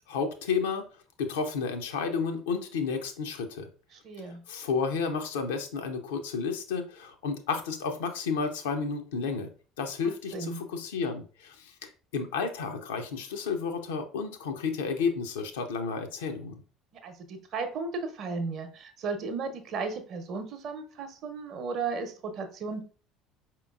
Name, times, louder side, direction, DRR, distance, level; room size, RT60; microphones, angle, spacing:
voice 1, 0.1-0.8 1.2-3.7 4.5-9.5 9.8-16.5, left 5 dB, 70° left, 6 dB, 0.6 m, -31 dB
voice 2, 4.0-4.4 10.3-10.6 17.0-22.8, right 4 dB, 45° right, 7 dB, 0.8 m, -35 dB
4.9 x 2.9 x 2.4 m, 0.39 s
figure-of-eight pair, 60°, 0 cm